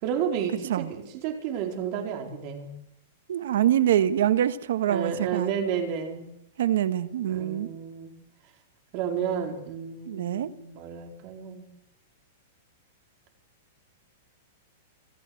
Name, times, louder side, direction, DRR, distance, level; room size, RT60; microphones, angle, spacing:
voice 1, 0.0-2.7 4.9-6.3 7.3-8.1 8.9-11.7, right 8 dB, 35° right, 4 dB, 4.4 m, -31 dB
voice 2, 3.3-5.5 6.6-7.7 10.1-10.5, right 11 dB, 75° right, 12 dB, 1.6 m, -25 dB
26.5 x 14.5 x 7.9 m, 0.80 s
supercardioid pair, 165°, 0 cm